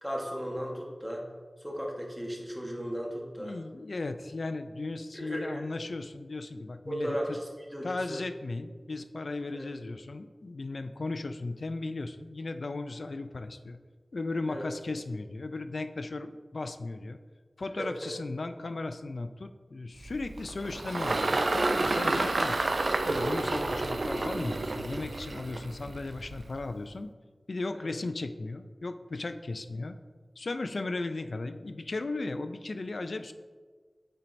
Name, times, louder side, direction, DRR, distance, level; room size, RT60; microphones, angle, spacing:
voice 1, 0.0-1.2 1.6-3.6 5.1-5.6 6.9-8.2 9.5-9.7 14.5-14.7 17.8-17.9 27.7-27.9, equal, ahead, -1 dB, 1.2 m, -36 dB
voice 2, 3.4-7.4 7.8-13.8 14.1-17.2 17.6-22.6 23.1-27.1 27.5-30.0 30.4-33.3, left 3 dB, 80° left, 9 dB, 0.3 m, -36 dB
Engine, 20.0-26.6, right 2 dB, 75° right, 0.3 m, -30 dB
8.8 x 4.4 x 2.6 m, 1.5 s
wide cardioid pair, 60°, 0 cm